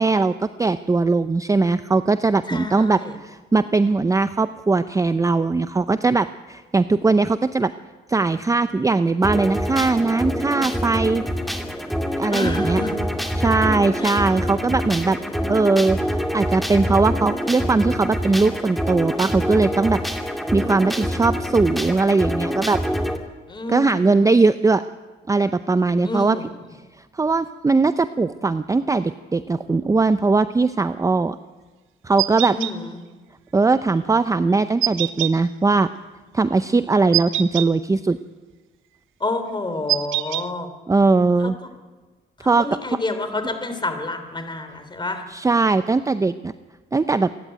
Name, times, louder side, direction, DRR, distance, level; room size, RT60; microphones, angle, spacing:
voice 1, 0.0-7.7 8.1-11.2 12.2-12.8 13.3-15.2 15.5-16.0 16.3-20.0 20.5-22.8 23.7-24.8 25.3-26.4 27.1-31.4 32.0-32.6 33.5-35.9 36.3-38.2 40.9-41.5 42.4-42.7 45.3-46.5 46.9-47.3, right 3 dB, 15° right, 12 dB, 0.6 m, -20 dB
voice 2, 2.5-3.1 12.3-13.0 14.0-14.1 14.6-14.7 15.2-15.5 23.5-24.3 26.0-26.4 32.5-33.0 39.2-40.7 41.4-41.5 42.4-45.2, left 2 dB, 25° left, 8 dB, 3.4 m, -29 dB
sound 1, 9.2-23.2, equal, ahead, 2.4 m, -26 dB
sound 2, 32.2-32.7 34.8-35.3 37.1-37.7 39.9-40.4, right 14 dB, 85° right, 0.8 m, -23 dB
27.0 x 11.0 x 9.2 m, 1.3 s
cardioid pair, 90°, 20 cm